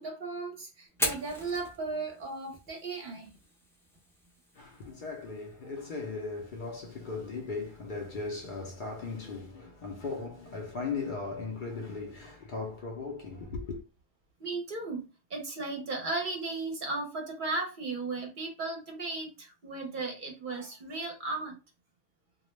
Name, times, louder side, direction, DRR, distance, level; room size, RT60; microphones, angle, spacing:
voice 1, 0.0-3.3 14.4-15.0 15.3-21.6, right 3 dB, 55° right, 0.7 m, -36 dB
Fire, 0.9-8.8, equal, 5° left, 0.4 m, -42 dB
voice 2, 4.5-13.8, left 4 dB, 55° left, 0.6 m, -38 dB
2.2 x 2.1 x 3.0 m
omnidirectional pair, 1.1 m